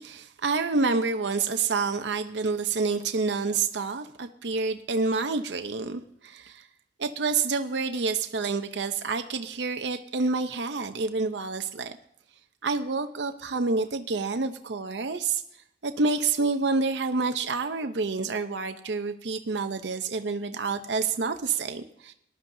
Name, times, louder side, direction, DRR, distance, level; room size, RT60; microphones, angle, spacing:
voice 1, 0.0-6.7 7.0-12.0 12.6-15.4 15.8-22.1, right 4 dB, 80° right, 8 dB, 0.7 m, -28 dB
18.5 x 11.5 x 2.7 m, 0.74 s
head